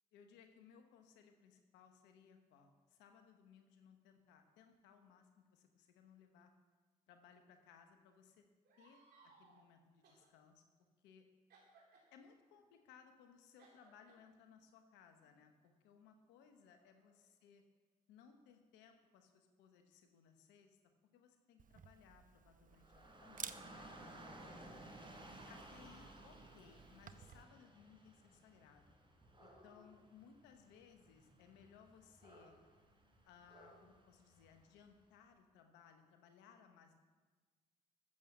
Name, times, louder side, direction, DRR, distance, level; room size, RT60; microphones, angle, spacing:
voice 1, 0.1-6.5 7.1-8.4 8.8-10.6 11.0-11.2 12.1-17.6 18.1-20.8 21.1-24.8 25.5-29.0 29.4-32.5 33.2-37.0, left 7 dB, 85° left, 6 dB, 0.9 m, -64 dB
sound 1, 8.6-9.6 10.0-10.3 11.5-12.1 13.6-14.2 15.2-15.3 16.2-17.5, right 4 dB, 70° right, 3.7 m, -67 dB
Camera, 21.6-27.4, right 7 dB, 50° right, 0.8 m, -55 dB
Dog / Rain, 22.7-34.9, right 1 dB, 30° right, 4.0 m, -58 dB
13.0 x 7.3 x 7.2 m, 1.4 s
hypercardioid pair, 45°, 18 cm